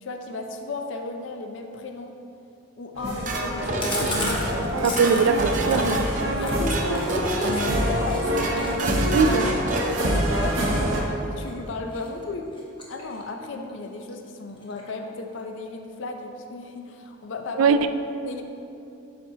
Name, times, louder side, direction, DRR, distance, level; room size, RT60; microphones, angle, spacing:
voice 1, 0.0-2.2 2.8-4.9 6.4-8.8 9.1-9.3 10.2-12.5 12.9-17.8 18.2-18.4, left 3 dB, 65° left, 4 dB, 0.5 m, -35 dB
sound 1, 3.0-11.0, equal, 70° right, 0.8 m, -26 dB
sound 2, 3.3-4.5 4.8-6.2 6.5-6.8 7.1-7.9 8.2-8.5 8.8-10.1, right 2 dB, 40° right, 0.5 m, -30 dB
Chewing mastication, 3.8-7.7 8.0-8.2 8.5-11.5 11.9-12.2 12.5-13.4 13.7-13.8 14.1-14.2 14.5-15.1, left 2 dB, 25° left, 0.7 m, -35 dB
voice 2, 4.8-6.0 9.1-9.6 17.6-17.8, right 5 dB, 90° right, 11 dB, 0.3 m, -21 dB
11.0 x 4.1 x 2.8 m, 2.7 s
head